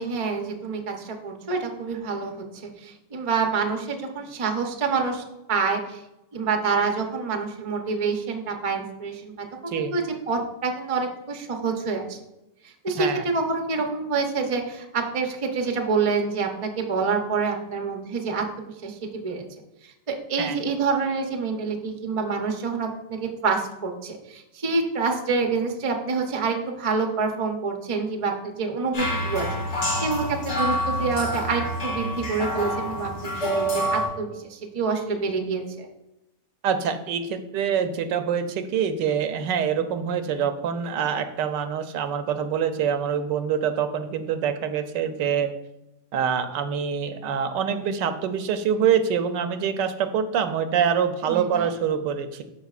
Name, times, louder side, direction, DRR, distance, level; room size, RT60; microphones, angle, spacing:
voice 1, 0.0-2.5 2.8-5.2 5.5-6.0 6.3-12.2 12.6-19.5 19.8-29.5 29.7-35.9 51.3-51.7, right 4 dB, 50° right, 3 dB, 0.4 m, -27 dB
voice 2, 9.7-10.0 13.0-13.2 20.4-20.6 36.6-45.5 46.1-52.4, right 7 dB, 80° right, 9 dB, 1.2 m, -25 dB
sound 1, 28.9-34.1, equal, 90° left, 3.0 m, -27 dB
12.5 x 4.9 x 2.4 m, 0.91 s
omnidirectional pair, 2.0 m